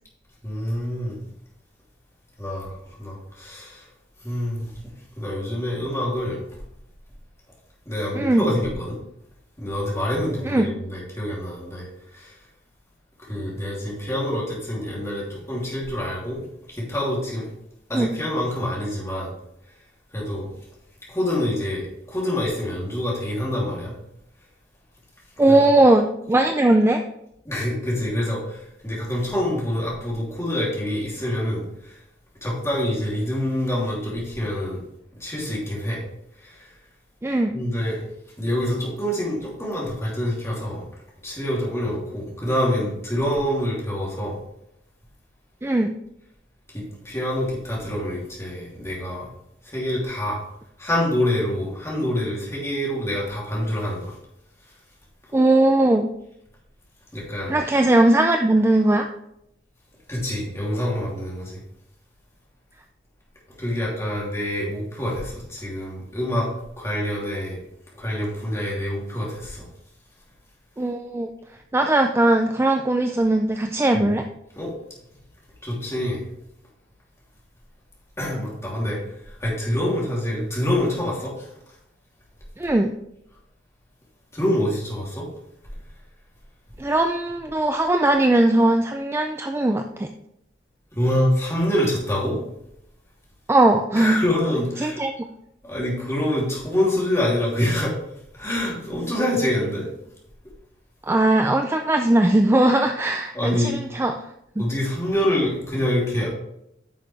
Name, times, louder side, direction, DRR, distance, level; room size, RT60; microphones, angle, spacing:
voice 1, 0.4-1.2 2.4-3.8 4.2-4.7 5.1-6.4 7.9-9.0 9.6-11.9 12.1-12.4 13.2-16.4 16.7-17.5 17.9-19.3 20.1-20.5 21.1-23.9 25.5-25.6 27.4-32.0 32.4-34.8 35.2-36.0 36.4-36.7 37.5-38.0 38.4-40.8 41.2-44.4 46.7-49.3 49.6-50.4 50.8-54.1 57.1-57.6 60.1-61.6 63.6-66.5 66.8-67.6 67.9-69.7 73.9-74.1 74.6-74.7 75.6-76.3 78.2-79.0 79.4-81.5 84.3-85.3 90.9-92.4 94.0-95.0 95.6-98.0 98.3-99.9 103.3-103.8 104.6-106.3, left 1 dB, 15° left, -5 dB, 3.0 m, -26 dB
voice 2, 25.4-27.0 37.2-37.6 45.6-45.9 55.3-56.1 57.5-59.1 70.8-71.3 71.7-74.3 82.6-82.9 86.8-90.1 93.5-94.2 94.8-95.1 101.0-104.2 104.6-104.7, right 1 dB, 15° right, 5 dB, 0.4 m, -19 dB
9.7 x 6.2 x 3.3 m, 0.78 s
head